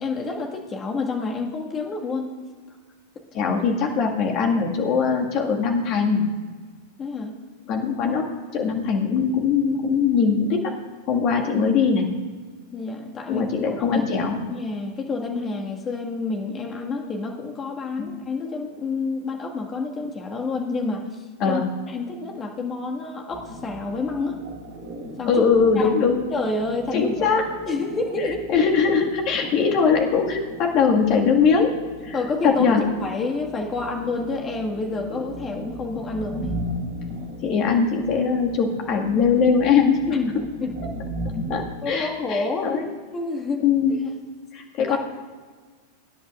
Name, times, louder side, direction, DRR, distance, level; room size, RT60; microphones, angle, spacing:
voice 1, 0.0-2.3 7.0-7.3 12.7-13.5 13.8-24.4 25.2-25.5 25.8-25.9 26.3-27.3 27.7-28.5 32.1-36.6 40.1-40.8 41.8-42.8 43.1-43.6 43.9-44.0 44.8-45.0, left 3 dB, 25° left, 1 dB, 1.7 m, -29 dB
voice 2, 3.3-6.2 7.7-10.7 11.1-12.1 13.3-14.4 18.0-18.1 21.4-21.7 25.3-26.2 26.9-27.5 28.5-31.7 32.0-32.2 32.4-32.8 37.4-40.0 41.5-42.9 43.6-44.0 44.5-45.0, left 5 dB, 40° left, 2 dB, 1.8 m, -21 dB
sound 1, 23.3-41.7, equal, 50° right, 3.5 m, -37 dB
23.0 x 10.5 x 2.4 m, 1.5 s
figure-of-eight pair, 90°, 0 cm